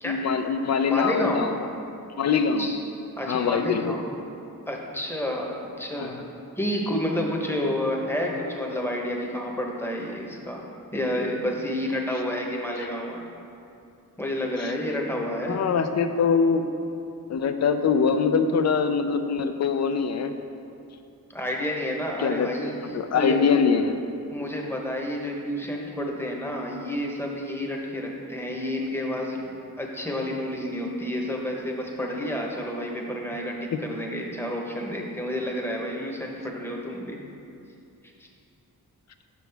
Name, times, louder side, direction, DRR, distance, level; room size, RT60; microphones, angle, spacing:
voice 1, 0.0-1.6 2.2-2.7 3.3-4.0 6.0-6.1 14.6-14.7 15.5-16.7 17.3-20.3 22.2-22.5 22.9-24.0, left 5 dB, 50° left, 8 dB, 0.5 m, -23 dB
voice 2, 0.9-1.5 2.6-2.8 3.2-4.0 4.7-6.2 6.6-10.7 10.9-13.2 14.2-15.6 21.3-23.4 24.3-37.2 38.2-38.3, left 1 dB, 5° left, -1 dB, 0.9 m, -30 dB
8.3 x 6.1 x 3.4 m, 2.6 s
wide cardioid pair, 105°, 35 cm